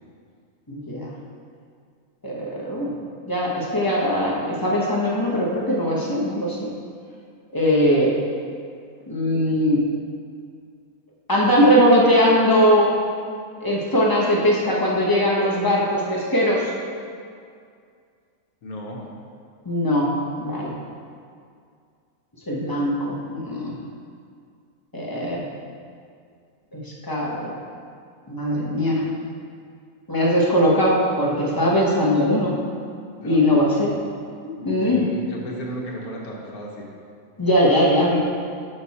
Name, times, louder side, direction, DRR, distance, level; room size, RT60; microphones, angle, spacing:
voice 1, 0.7-1.1 2.2-2.9 3.3-6.6 7.5-8.1 9.1-9.8 11.3-12.9 13.6-16.7 19.6-20.1 20.4-20.7 22.5-23.7 24.9-25.5 26.7-27.5 28.3-29.1 30.1-32.5 33.2-34.0 34.6-35.0 37.4-38.2, equal, 20° left, -4 dB, 0.8 m, -20 dB
voice 2, 18.6-19.1 33.1-33.6 34.6-36.9, equal, 75° left, -2 dB, 1.5 m, -34 dB
6.6 x 5.8 x 4.2 m, 2.3 s
omnidirectional pair, 1.6 m